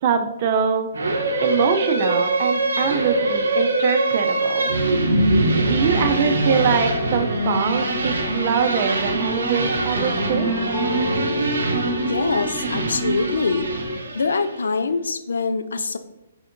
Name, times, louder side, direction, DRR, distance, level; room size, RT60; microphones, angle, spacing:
voice 1, 0.0-0.9 1.4-4.8 5.6-10.5, right 6 dB, 45° right, 6 dB, 0.5 m, -23 dB
sound 1, 0.9-14.6, right 2 dB, 90° right, 0.6 m, -23 dB
sound 2, 5.7-14.0, left 2 dB, 30° left, 0.6 m, -30 dB
voice 2, 12.0-13.7 14.1-16.0, left 4 dB, 85° left, 11 dB, 0.4 m, -24 dB
3.5 x 2.5 x 4.4 m, 0.88 s
hypercardioid pair, 145°, 0 cm